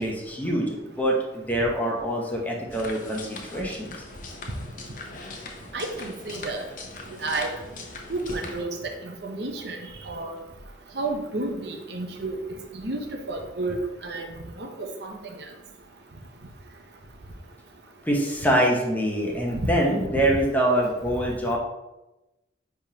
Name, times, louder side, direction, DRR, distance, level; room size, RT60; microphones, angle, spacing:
voice 1, 0.0-3.9 18.0-21.6, equal, 10° left, -2 dB, 1.0 m, -25 dB
sound 1, 2.7-8.6, left 2 dB, 45° left, 0.8 m, -40 dB
voice 2, 5.7-6.7 7.2-7.5 8.1-8.8 9.0-10.4 10.9-12.4 12.7-15.2 19.6-19.7 20.3-20.4, right 2 dB, 65° right, 3 dB, 0.8 m, -31 dB
9.9 x 3.5 x 2.9 m, 0.99 s
head